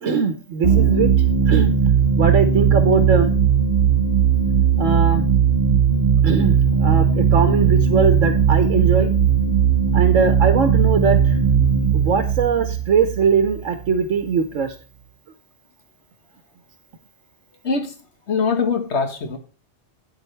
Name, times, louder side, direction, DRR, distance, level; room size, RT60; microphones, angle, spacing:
voice 1, 0.0-1.1 1.5-1.7 2.2-3.3 4.8-5.2 6.2-9.1 9.9-11.4 11.9-14.7, right 5 dB, 80° right, 7 dB, 1.3 m, -20 dB
sound 1, 0.6-13.9, right 7 dB, 50° right, 1.6 m, -18 dB
voice 2, 18.3-19.4, left 5 dB, 60° left, 6 dB, 1.7 m, -22 dB
8.9 x 8.9 x 3.3 m, 0.36 s
omnidirectional pair, 1.3 m